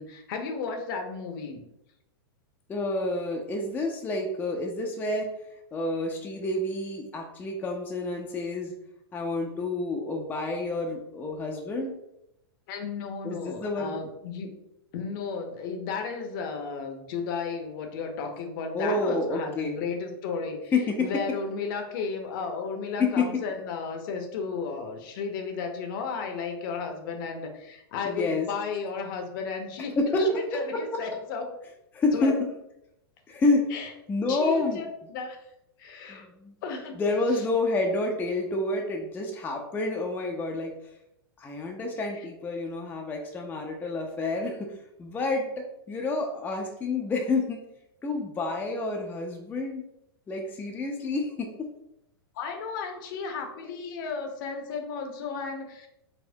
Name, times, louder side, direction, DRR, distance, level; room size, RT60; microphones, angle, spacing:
voice 1, 0.0-1.6 12.7-14.5 14.9-20.7 21.0-31.5 32.1-32.3 33.7-33.9 34.3-35.4 35.8-36.3 36.6-37.0 37.3-37.4 52.3-55.9, left 5 dB, 55° left, 4 dB, 0.6 m, -34 dB
voice 2, 2.7-5.3 5.7-8.7 9.1-11.9 13.2-14.0 18.7-19.8 20.7-21.2 23.0-23.4 28.0-28.5 30.0-30.4 30.7-31.0 31.9-32.4 33.3-33.7 34.1-34.8 36.1-36.6 36.9-40.7 41.4-47.6 48.0-49.9 50.3-51.7, left 2 dB, 15° left, 1 dB, 0.4 m, -29 dB
4.1 x 2.1 x 2.6 m, 0.83 s
hypercardioid pair, 115°, 13 cm